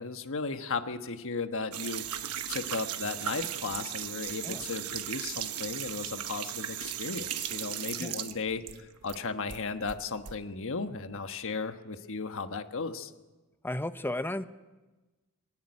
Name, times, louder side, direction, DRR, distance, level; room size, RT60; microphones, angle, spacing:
voice 1, 0.0-2.0 2.5-13.1, left 4 dB, 65° left, 8 dB, 1.3 m, -35 dB
sound 1, 1.7-9.2 9.5-10.4, right 11 dB, 85° right, 1.1 m, -37 dB
voice 2, 13.6-14.4, left 1 dB, 10° left, 11 dB, 0.8 m, -33 dB
21.0 x 17.0 x 9.8 m, 1.2 s
head